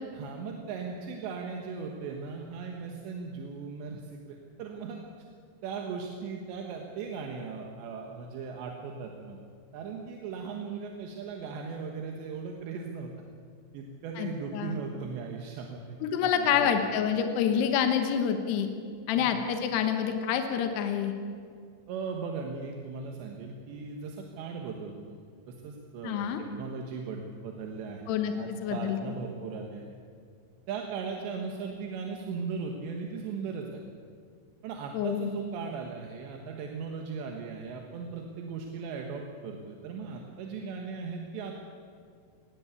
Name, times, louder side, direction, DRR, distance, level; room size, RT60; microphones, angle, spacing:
voice 1, 0.1-5.0 5.6-9.4 9.7-13.1 13.7-16.8 19.2-19.5 21.9-25.2 25.5-29.8 30.7-33.8 34.6-41.7, right 5 dB, 85° right, 2 dB, 3.6 m, -38 dB
voice 2, 14.2-14.8 16.0-18.7 19.1-21.1 26.0-26.4 28.1-29.1 34.9-35.3, left 8 dB, 75° left, 6 dB, 3.2 m, -27 dB
20.5 x 16.5 x 8.2 m, 2.3 s
omnidirectional pair, 5.0 m